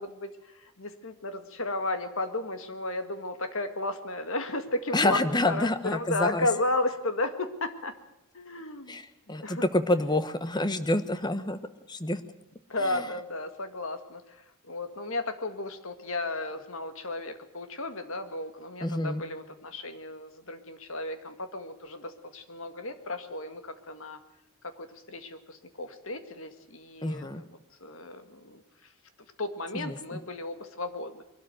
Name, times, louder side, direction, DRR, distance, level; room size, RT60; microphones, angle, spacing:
voice 1, 0.0-7.9 8.3-9.0 9.4-9.6 12.7-14.4 14.7-24.2 24.6-27.2 27.8-28.6 29.4-31.2, left 2 dB, 60° left, 9 dB, 1.9 m, -34 dB
voice 2, 4.9-6.5 8.9-11.6 11.9-12.2 12.8-13.1 18.8-19.2 27.0-27.4 29.7-30.2, left 1 dB, 20° left, 11 dB, 1.1 m, -28 dB
22.5 x 12.5 x 9.1 m, 0.90 s
head